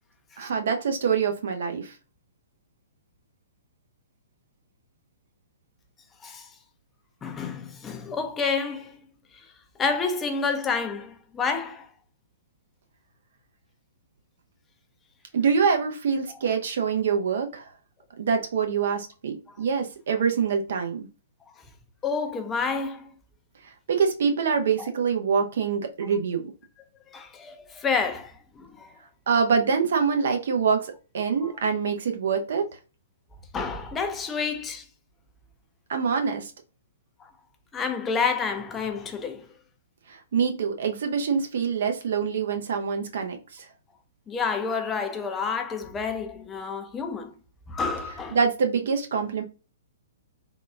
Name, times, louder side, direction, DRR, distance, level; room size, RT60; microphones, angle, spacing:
voice 1, 0.4-1.9 15.3-17.7 18.2-21.1 23.9-26.5 29.3-32.6 35.9-36.5 40.1-43.7 48.3-49.4, right 6 dB, 55° right, 0.6 m, -25 dB
voice 2, 7.2-9.0 9.8-11.9 22.0-23.1 24.8-24.9 27.1-28.9 33.5-34.9 37.2-37.3 37.7-39.5 44.3-47.3 47.7-48.4, left 5 dB, 15° left, 0.5 m, -29 dB
3.6 x 2.3 x 2.4 m
figure-of-eight pair, 115°, 0 cm